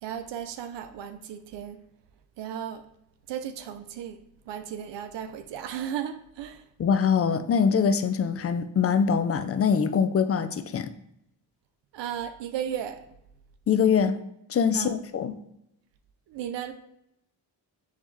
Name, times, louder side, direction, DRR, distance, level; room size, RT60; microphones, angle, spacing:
voice 1, 0.0-1.8 2.4-2.8 3.3-4.2 4.5-6.7 11.9-13.0 14.7-14.9 16.3-16.7, right 9 dB, 80° right, 9 dB, 0.5 m, -35 dB
voice 2, 6.8-10.9 13.7-14.2 14.5-15.4, left 6 dB, 35° left, 11 dB, 0.4 m, -23 dB
4.9 x 3.5 x 2.7 m, 0.80 s
cardioid pair, 70°, 43 cm